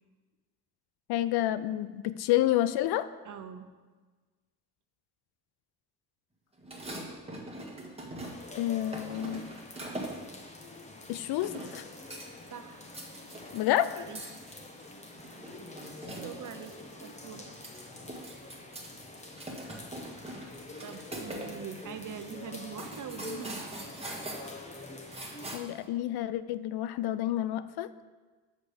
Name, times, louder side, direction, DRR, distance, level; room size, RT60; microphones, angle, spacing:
voice 1, 1.1-3.1 8.5-9.5 11.1-11.9 13.5-14.1 25.5-27.9, left 13 dB, 70° left, 14 dB, 0.5 m, -29 dB
voice 2, 3.2-3.7 12.5-12.9 14.1-14.2 16.2-17.5 20.8-23.9, right 7 dB, 50° right, 8 dB, 0.8 m, -43 dB
sound 1, 6.6-8.6 8.9-10.3 11.1-11.8 12.1-12.5 12.8-16.7 17.0-17.1 17.4-18.9 19.2-21.5 21.8-21.9 22.3-25.8, right 1 dB, 15° right, 1.6 m, -42 dB
sound 2, 8.2-25.5, left 2 dB, 15° left, 1.1 m, -47 dB
6.1 x 5.2 x 6.7 m, 1.3 s
cardioid pair, 80°, 39 cm